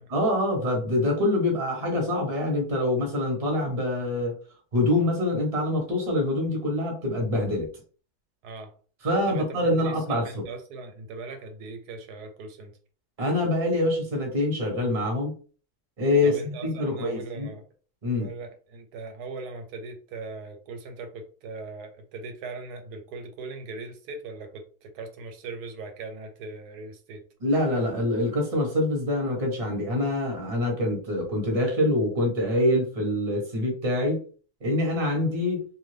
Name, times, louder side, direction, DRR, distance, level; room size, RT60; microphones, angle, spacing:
voice 1, 0.1-4.4 4.7-7.7 9.0-10.4 13.2-15.3 16.0-17.5 18.0-18.3 27.4-34.2 34.6-35.6, left 1 dB, 30° right, 0.9 m, -25 dB
voice 2, 8.4-8.7 9.3-12.7 16.2-17.6 18.1-27.2, right 3 dB, 85° right, 1.2 m, -39 dB
2.6 x 2.5 x 3.2 m
omnidirectional pair, 1.7 m